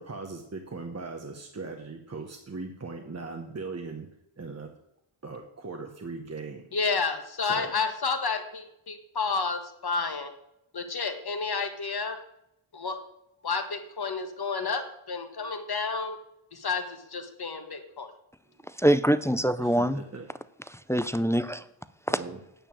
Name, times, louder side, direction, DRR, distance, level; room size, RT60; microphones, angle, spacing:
voice 1, 0.0-4.1 4.4-4.7 5.2-6.6 7.4-7.7 18.6-18.7 19.6-20.4 22.1-22.4, right 3 dB, 30° right, 3 dB, 1.1 m, -39 dB
voice 2, 6.7-10.3 10.7-12.2 12.7-13.0 13.4-16.2 16.5-18.1, left 4 dB, 50° left, 7 dB, 1.5 m, -30 dB
voice 3, 18.8-20.0 20.9-21.6 22.1-22.2, right 1 dB, 5° left, 14 dB, 0.4 m, -24 dB
9.1 x 6.7 x 8.8 m, 0.81 s
wide cardioid pair, 125°, 49 cm